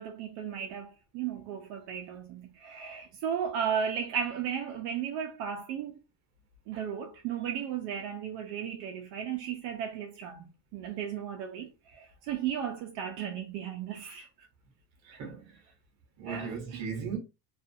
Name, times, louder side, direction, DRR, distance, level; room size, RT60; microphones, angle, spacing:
voice 1, 0.0-6.0 6.7-14.5 16.2-16.8, right 8 dB, 65° right, 0.6 m, -35 dB
voice 2, 15.0-15.6 16.2-17.2, right 6 dB, 40° right, 0.9 m, -37 dB
2.4 x 2.4 x 2.6 m
cardioid pair, 180°, 43 cm